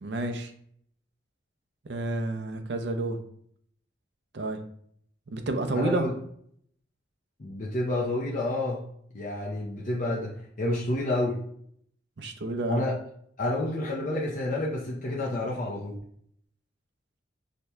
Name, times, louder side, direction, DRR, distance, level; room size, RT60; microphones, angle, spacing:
voice 1, 0.0-0.5 1.9-3.2 4.3-4.6 5.3-6.1 12.2-12.8, right 2 dB, 60° right, 7 dB, 0.5 m, -30 dB
voice 2, 5.7-6.1 7.4-8.8 9.1-11.4 12.7-12.9 13.4-16.0, left 1 dB, 40° left, -4 dB, 0.6 m, -29 dB
6.4 x 2.7 x 2.2 m, 0.66 s
head